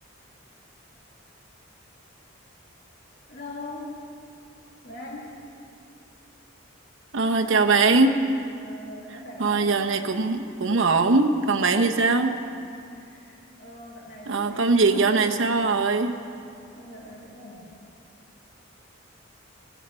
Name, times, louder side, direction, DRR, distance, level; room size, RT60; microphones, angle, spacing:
voice 1, 3.3-4.0 4.8-5.4 7.4-8.1 8.6-10.0 12.9-15.4 16.7-17.7, left 1 dB, 50° left, -4 dB, 2.3 m, -41 dB
voice 2, 7.1-8.1 9.4-12.4 14.3-16.2, right 3 dB, 65° right, 4 dB, 0.8 m, -21 dB
16.5 x 16.0 x 4.4 m, 2.5 s
head